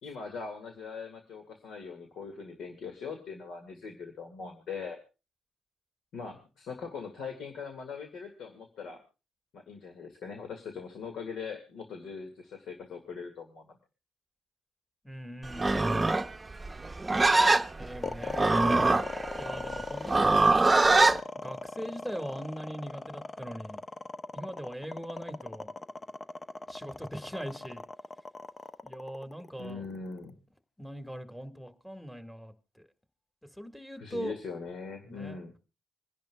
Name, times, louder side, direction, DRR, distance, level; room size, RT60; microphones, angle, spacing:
voice 1, 0.0-5.0 6.1-9.0 9.5-13.7 29.6-30.4 34.0-35.5, left 5 dB, 75° left, 4 dB, 2.0 m, -41 dB
voice 2, 15.0-15.9 17.8-19.0 19.3-20.4 21.4-23.8 24.3-25.7 26.7-27.8 28.8-29.8 30.8-32.8 33.6-34.3 35.1-35.4, equal, 5° left, 7 dB, 1.7 m, -41 dB
Livestock farm animals working animals, 15.5-21.2, right 3 dB, 25° right, 0.7 m, -24 dB
sound 1, 18.0-30.3, left 3 dB, 35° left, 0.8 m, -39 dB
27.0 x 10.5 x 2.3 m, 0.31 s
supercardioid pair, 55°, 0 cm